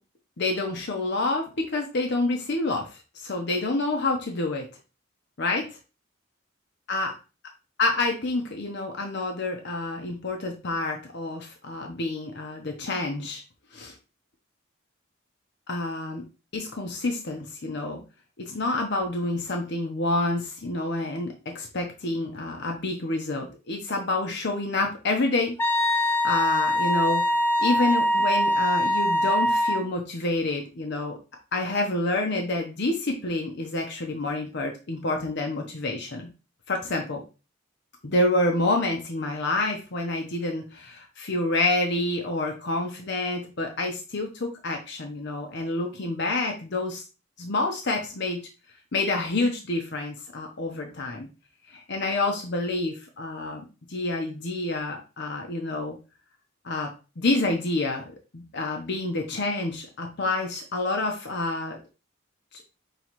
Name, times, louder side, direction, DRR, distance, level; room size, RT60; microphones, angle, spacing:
voice 1, 0.4-4.7 5.4-5.7 6.9-7.1 7.8-13.4 13.7-14.0 15.7-16.2 16.5-18.0 18.4-25.5 26.1-27.2 27.6-31.2 31.5-36.3 36.7-37.2 38.0-47.0 47.4-48.5 48.9-51.3 51.7-56.0 56.6-61.8 62.5-62.6, left 2 dB, 60° left, 3 dB, 0.8 m, -28 dB
Wind instrument woodwind instrument, 25.6-29.9, equal, 10° left, 0.4 m, -23 dB
5.7 x 3.1 x 3.0 m, 0.32 s
head